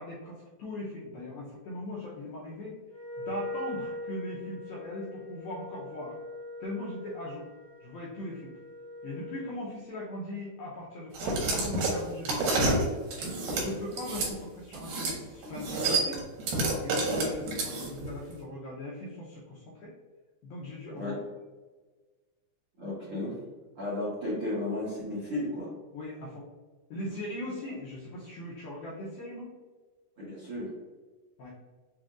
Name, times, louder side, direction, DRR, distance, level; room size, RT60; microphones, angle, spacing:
voice 1, 0.0-2.8 3.2-6.1 6.6-7.5 7.8-8.5 9.0-12.8 13.2-16.2 16.8-19.9 20.4-21.2 25.9-26.5 26.9-29.5 31.4-31.5, left 1 dB, 85° left, -5 dB, 2.1 m, -39 dB
Wind instrument woodwind instrument, 2.9-9.6, left 2 dB, 55° left, 2.6 m, -41 dB
sound 1, 11.1-14.3 14.7-15.2 15.4-18.1, right 2 dB, 70° right, 2.3 m, -29 dB
voice 2, 22.8-23.4 23.7-25.7 30.2-30.7, left 1 dB, 90° right, -10 dB, 1.2 m, -34 dB
7.4 x 2.5 x 2.4 m, 1.3 s
omnidirectional pair, 5.1 m